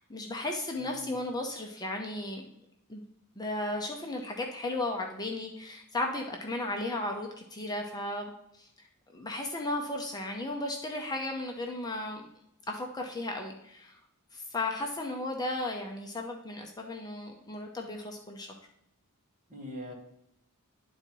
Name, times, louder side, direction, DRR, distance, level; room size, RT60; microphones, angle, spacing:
voice 1, 0.0-2.4 2.9-3.0 3.4-8.9 9.1-12.3 12.7-14.0 14.3-18.5, left 2 dB, 20° left, 1 dB, 0.7 m, -35 dB
voice 2, 0.8-1.2 19.5-19.9, equal, 35° right, -1 dB, 1.9 m, -41 dB
10.5 x 3.9 x 4.6 m, 0.77 s
head